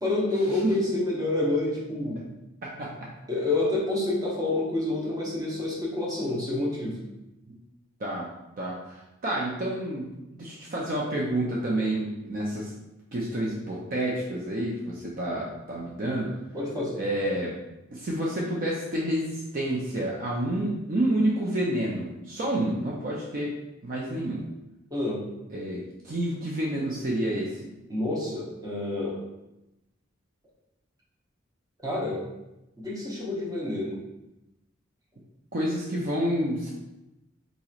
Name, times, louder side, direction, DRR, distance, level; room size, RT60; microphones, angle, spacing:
voice 1, 0.0-2.2 3.3-7.0 16.5-17.0 24.9-25.2 27.9-29.2 31.8-32.2 32.8-34.0, left 2 dB, 20° right, -4 dB, 0.8 m, -28 dB
voice 2, 2.6-3.1 8.0-8.3 8.6-10.0 10.3-12.7 13.1-16.3 17.0-17.5 17.9-23.6 23.8-24.4 25.5-27.6 35.5-36.7, right 1 dB, 45° right, -4 dB, 0.5 m, -29 dB
4.0 x 2.9 x 2.4 m, 0.94 s
head